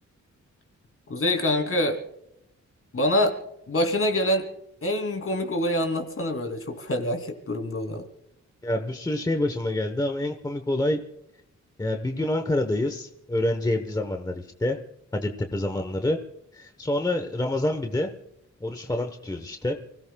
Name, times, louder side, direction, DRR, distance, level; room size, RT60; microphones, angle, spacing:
voice 1, 1.1-2.0 2.9-3.4 3.7-4.5 4.8-8.1, left 1 dB, 50° left, 6 dB, 2.8 m, -25 dB
voice 2, 8.6-11.0 11.8-14.8 15.1-16.2 16.5-18.1 18.6-19.7, left 1 dB, 15° left, 6 dB, 0.9 m, -27 dB
29.5 x 17.5 x 2.2 m, 0.81 s
wide cardioid pair, 175°, 30 cm